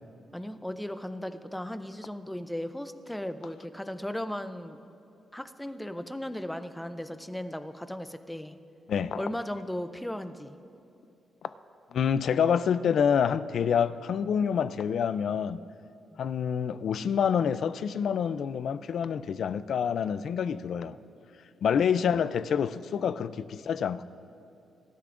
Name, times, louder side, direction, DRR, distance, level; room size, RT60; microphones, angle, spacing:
voice 1, 0.3-4.8 5.3-8.6 9.2-10.6 16.1-16.2, left 1 dB, 5° left, 0.5 m, -36 dB
voice 2, 8.9-9.2 11.9-15.6 16.2-21.0 21.6-24.0, left 7 dB, 65° left, 0.4 m, -27 dB
23.0 x 12.0 x 2.5 m
cardioid pair, 125°, 0 cm